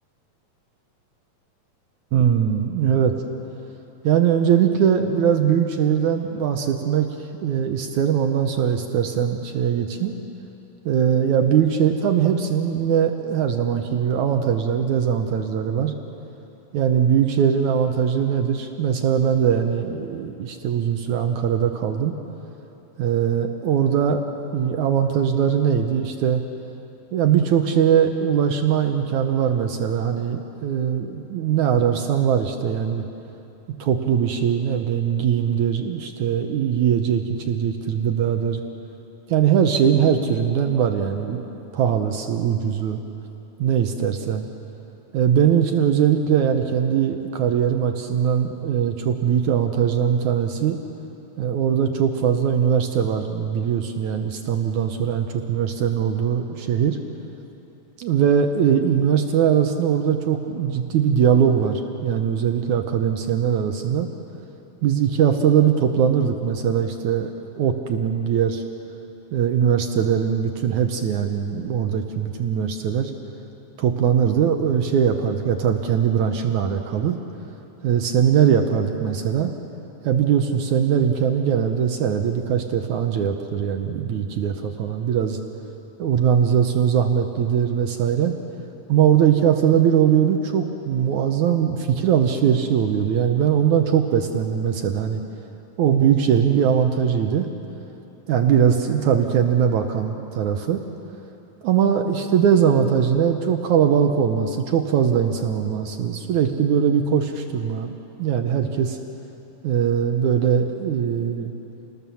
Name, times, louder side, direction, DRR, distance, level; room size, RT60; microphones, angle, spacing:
voice 1, 2.1-3.2 4.0-10.2 10.9-15.9 16.7-22.2 23.0-24.2 24.5-26.4 27.1-33.1 33.8-38.6 39.3-41.4 41.7-43.0 43.6-44.5 45.1-50.8 51.4-57.0 58.0-64.1 64.8-68.6 69.3-73.1 73.8-77.2 77.8-79.5 80.0-85.4 86.0-88.3 88.9-95.2 95.8-97.5 98.3-100.8 101.6-107.9 108.2-109.0 109.6-111.5, right 8 dB, 70° right, 5 dB, 2.0 m, -21 dB
29.0 x 20.0 x 7.1 m, 3.0 s
omnidirectional pair, 4.2 m